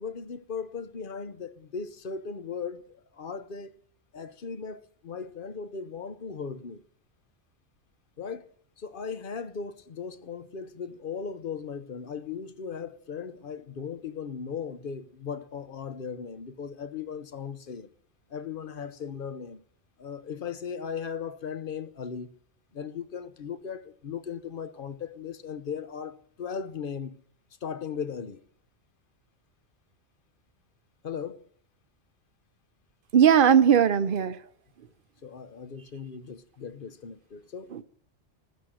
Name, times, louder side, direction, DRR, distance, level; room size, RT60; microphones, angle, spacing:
voice 1, 0.0-3.8 4.1-6.8 8.2-8.5 8.8-17.9 18.3-19.6 20.0-22.3 22.7-27.2 27.6-28.4 31.0-31.4 35.2-37.7, left 6 dB, 50° left, 1.0 m, -37 dB
voice 2, 33.1-34.4 37.7-37.8, right 8 dB, 50° right, 0.9 m, -19 dB
15.0 x 13.0 x 6.3 m
omnidirectional pair, 1.2 m